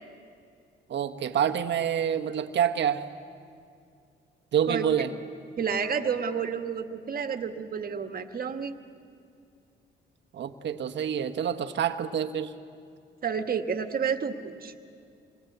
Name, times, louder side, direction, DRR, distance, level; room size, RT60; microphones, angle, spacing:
voice 1, 0.9-3.0 4.5-5.1 10.3-12.5, right 9 dB, 65° right, 6 dB, 1.3 m, -27 dB
voice 2, 5.6-8.7 13.2-14.7, right 6 dB, 45° right, 6 dB, 1.7 m, -30 dB
27.5 x 22.0 x 8.1 m, 2.4 s
cardioid pair, 90°, 20 cm